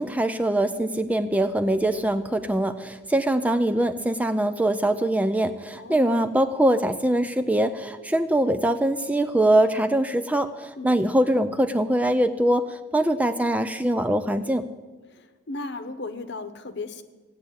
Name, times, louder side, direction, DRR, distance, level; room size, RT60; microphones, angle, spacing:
voice 1, 0.0-14.7, right 1 dB, 5° right, 10 dB, 0.4 m, -23 dB
voice 2, 5.7-6.1 10.8-11.0 15.1-17.0, left 3 dB, 60° left, 10 dB, 1.0 m, -36 dB
16.5 x 8.5 x 8.7 m, 1.3 s
head